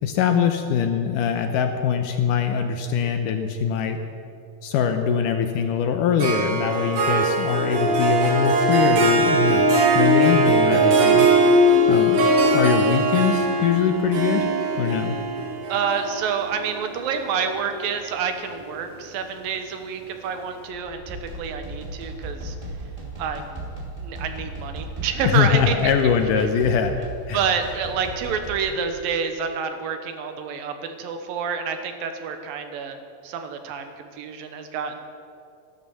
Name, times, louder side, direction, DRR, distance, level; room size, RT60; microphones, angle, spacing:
voice 1, 0.0-4.0 4.6-9.7 9.9-11.3 11.9-12.2 12.5-14.4 14.8-15.2 25.2-26.9 27.3-27.4, left 7 dB, 75° left, 6 dB, 2.1 m, -22 dB
Harp, 6.2-17.6, right 1 dB, 50° right, 2.2 m, -20 dB
voice 2, 10.7-11.0 15.7-22.6 23.2-23.6 24.0-25.9 27.3-33.0 33.2-35.0, right 6 dB, 75° right, 7 dB, 2.7 m, -28 dB
sound 1, 20.7-28.9, right 2 dB, 15° right, 1.7 m, -36 dB
14.0 x 12.5 x 7.1 m, 2.5 s
omnidirectional pair, 4.3 m